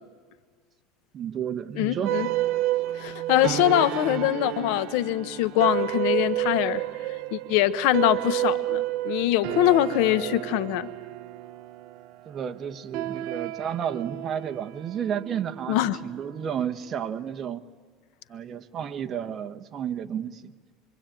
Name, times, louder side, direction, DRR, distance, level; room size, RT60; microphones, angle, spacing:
voice 1, 1.1-2.1 12.2-17.6 18.3-20.5, right 8 dB, 30° right, 7 dB, 1.2 m, -32 dB
voice 2, 1.8-2.3 2.9-6.8 7.3-10.9 15.7-16.0, left 14 dB, 70° left, 15 dB, 1.0 m, -23 dB
sound 1, 2.0-16.6, right 15 dB, 60° right, 0.9 m, -31 dB
25.5 x 24.0 x 9.1 m, 1.5 s
supercardioid pair, 140°, 0 cm